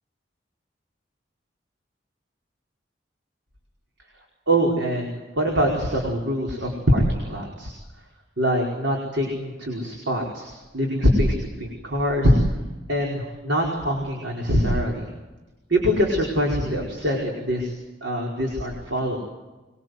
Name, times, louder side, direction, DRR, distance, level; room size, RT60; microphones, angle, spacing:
voice 1, 4.5-7.7 8.4-12.3 12.9-15.0 15.7-17.7 18.0-19.2, equal, 80° right, -1 dB, 5.0 m, -23 dB
25.5 x 22.5 x 8.1 m, 1.1 s
head